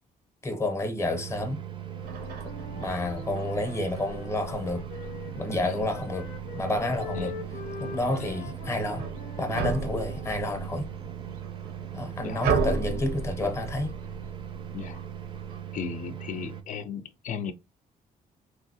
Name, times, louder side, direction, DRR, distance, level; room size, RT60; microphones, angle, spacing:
voice 1, 0.4-1.6 2.4-4.8 5.4-6.3 6.5-7.3 7.8-9.1 9.4-10.9 11.9-13.9, left 2 dB, 20° left, 0.6 m, -30 dB
sound 1, 1.0-16.6, right 11 dB, 30° right, 0.4 m, -39 dB
Wind instrument woodwind instrument, 1.9-5.6 5.9-10.3, left 6 dB, 90° left, 0.7 m, -44 dB
sound 2, 2.0-15.6, right 4 dB, 90° right, 0.6 m, -36 dB
voice 2, 15.7-17.5, left 7 dB, 55° left, 0.4 m, -36 dB
3.0 x 2.7 x 2.7 m
cardioid pair, 135°, 15 cm